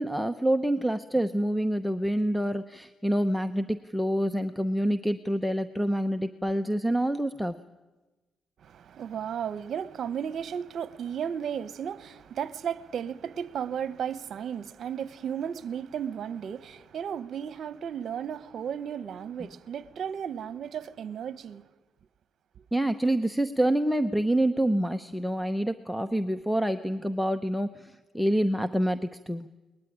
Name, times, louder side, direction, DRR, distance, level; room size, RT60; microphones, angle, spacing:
voice 1, 0.0-7.5 19.4-19.5 22.7-29.5, right 1 dB, ahead, 0.8 m, -27 dB
voice 2, 8.6-21.6 22.6-22.7, right 8 dB, 60° right, 1.1 m, -34 dB
21.5 x 20.5 x 10.0 m
cardioid pair, 90°, 0 cm